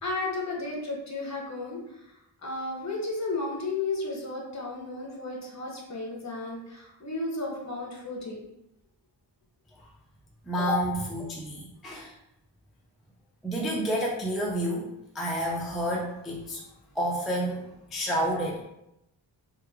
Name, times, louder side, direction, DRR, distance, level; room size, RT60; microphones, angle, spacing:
voice 1, 0.0-8.5, left 2 dB, 40° left, -2 dB, 0.9 m, -34 dB
voice 2, 10.4-12.1 13.4-14.9 15.1-16.6 17.0-18.6, equal, ahead, -4 dB, 0.4 m, -29 dB
3.1 x 2.3 x 3.4 m, 0.86 s
wide cardioid pair, 130°, 45 cm